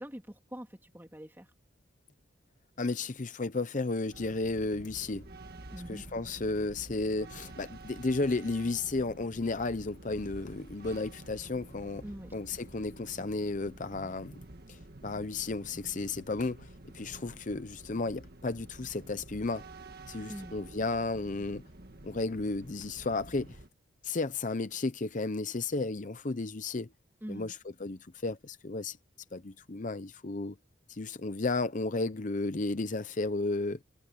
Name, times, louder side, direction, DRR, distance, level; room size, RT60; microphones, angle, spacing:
voice 1, 0.0-1.5 5.7-6.1 12.0-12.3 20.3-20.5 27.2-27.5, equal, 10° right, 2.4 m, -44 dB
voice 2, 2.8-5.2 5.9-12.0 12.3-14.4 14.7-19.6 20.1-21.7 22.0-23.6 24.0-26.9 27.3-27.6 27.8-29.0 29.3-30.6 30.9-33.8, left 3 dB, 40° left, 0.7 m, -33 dB
sound 1, 4.1-23.7, right 2 dB, 50° right, 1.9 m, -49 dB
head